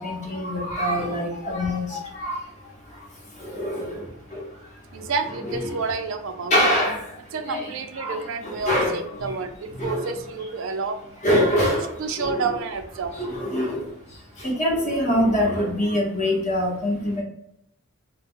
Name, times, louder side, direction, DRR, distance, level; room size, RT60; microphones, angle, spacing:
voice 1, 0.0-5.1 5.4-5.7 6.5-9.4 9.7-10.1 11.2-12.5 13.1-17.2, equal, 30° left, -3 dB, 0.7 m, -25 dB
voice 2, 4.9-6.5 7.3-11.0 12.0-13.1, right 4 dB, 60° right, 6 dB, 0.4 m, -29 dB
2.1 x 2.1 x 3.6 m, 0.79 s
head